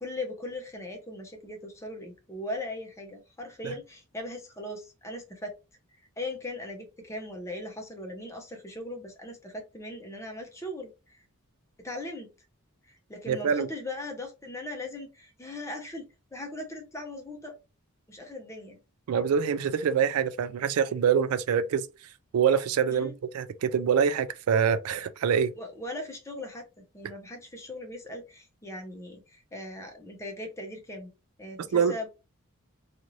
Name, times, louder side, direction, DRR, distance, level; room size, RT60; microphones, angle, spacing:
voice 1, 0.0-5.5 6.2-11.2 11.8-12.3 12.8-16.1 16.3-17.5 18.1-18.8 22.9-23.1 25.6-31.1 31.4-32.1, left 1 dB, 15° left, 0.7 m, -39 dB
voice 2, 13.3-13.7 19.1-21.9 22.3-25.5 31.7-31.9, right 7 dB, 85° right, 0.3 m, -25 dB
2.6 x 2.5 x 3.0 m
head